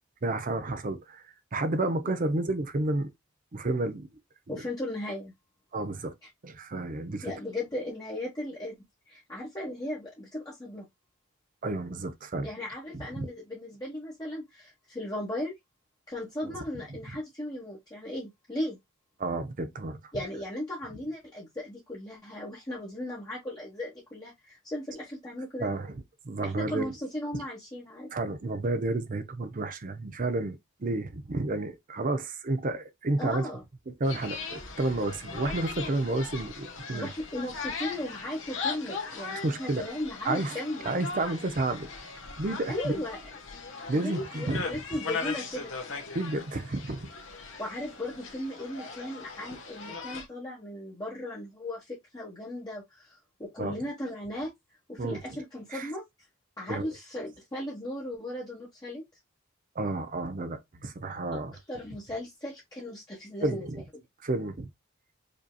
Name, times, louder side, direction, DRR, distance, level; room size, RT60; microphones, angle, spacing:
voice 1, 0.2-1.2 1.5-3.1 3.5-4.1 5.7-6.1 6.4-7.3 11.6-12.5 12.9-13.3 16.4-16.5 19.2-20.0 25.6-25.9 26.2-26.9 28.1-33.5 33.9-37.1 39.3-39.9 40.2-40.6 40.9-41.9 42.4-43.0 43.9-44.6 46.1-47.1 53.6-53.8 55.0-55.2 55.7-55.9 56.7-56.9 59.8-61.5 63.4-63.8 64.2-64.7, right 2 dB, 40° right, 0.6 m, -31 dB
voice 2, 4.5-5.3 6.2-6.3 7.2-8.8 9.1-10.9 12.4-15.5 16.1-18.8 20.1-25.8 26.4-28.1 33.2-33.6 36.9-40.9 42.7-43.2 43.9-45.7 47.6-54.5 54.9-56.0 56.6-59.0 61.3-61.4 61.7-63.7 63.9-64.0, left 1 dB, 20° left, 1.1 m, -36 dB
sound 1, 34.0-50.2, left 4 dB, 70° left, 1.2 m, -39 dB
5.1 x 2.8 x 2.2 m
head